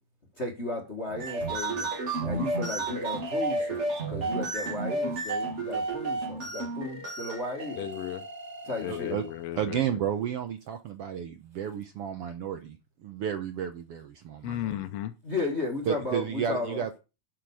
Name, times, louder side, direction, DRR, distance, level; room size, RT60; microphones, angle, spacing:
voice 1, 0.4-1.9 2.2-7.9 8.6-9.2 15.2-16.8, left 2 dB, 30° left, 1.5 m, -34 dB
sound 1, 1.1-9.4, right 2 dB, 40° right, 0.9 m, -32 dB
voice 2, 7.8-8.2 8.8-10.0 14.4-15.1, left 13 dB, 80° left, 1.4 m, -35 dB
voice 3, 8.9-9.2 9.5-12.8 13.0-14.8 15.9-17.0, right 9 dB, 80° right, 1.3 m, -32 dB
11.5 x 5.9 x 4.8 m
omnidirectional pair, 3.8 m